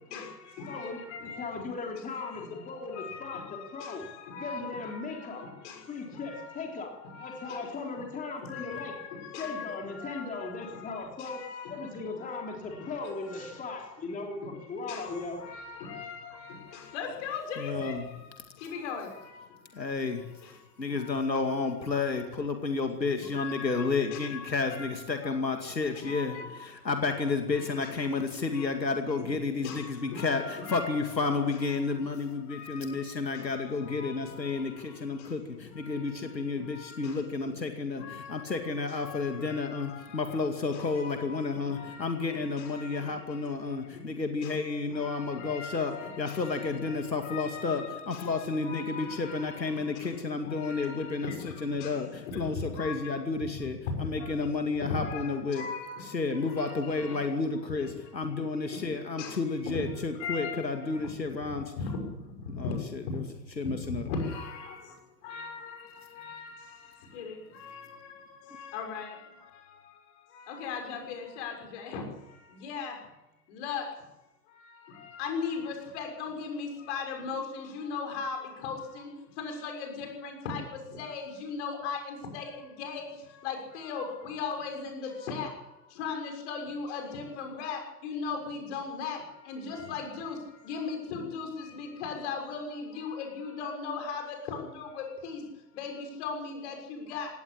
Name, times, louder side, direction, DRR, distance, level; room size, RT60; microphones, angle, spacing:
voice 1, 0.1-1.5 2.1-2.5 2.9-5.8 6.1-6.7 7.0-7.6 8.4-10.8 11.2-12.4 12.8-12.9 13.2-13.5 14.9-18.0 18.6-19.4 21.0-21.3 21.9-22.3 23.3-25.4 26.0-26.6 27.1-28.1 28.5-28.7 29.2-29.3 29.6-31.9 32.5-33.0 33.3-34.7 35.8-36.1 36.6-37.1 38.0-43.2 44.4-44.5 44.9-49.9 50.4-51.9 52.3-52.4 52.7-53.2 53.9-54.3 54.8-56.1 56.4-57.3 57.8-57.9 58.7-58.8 59.2-59.3 59.6-59.9 60.2-61.1 61.8-62.0 62.6-62.7 64.0-64.8 65.2-66.8 67.1-68.2 68.5-69.3 70.3-72.0 72.5-72.9 73.5-73.8 74.9-79.1 79.4-80.6 80.9-83.1 83.4-85.5 86.0-89.2 89.5-90.4 90.6-95.4 95.7-97.3, left 5 dB, 45° left, 3 dB, 6.7 m, -39 dB
voice 2, 0.6-5.4 5.9-9.0 9.4-11.4 11.7-15.4, left 3 dB, 15° left, 1 dB, 3.7 m, -38 dB
voice 3, 17.6-18.0 19.7-20.2 20.8-51.3 51.6-55.7 56.1-61.7 62.6-63.2 63.6-64.1, left 4 dB, 85° left, 5 dB, 2.4 m, -31 dB
18.0 x 17.0 x 8.8 m, 0.98 s
figure-of-eight pair, 110°, 50 cm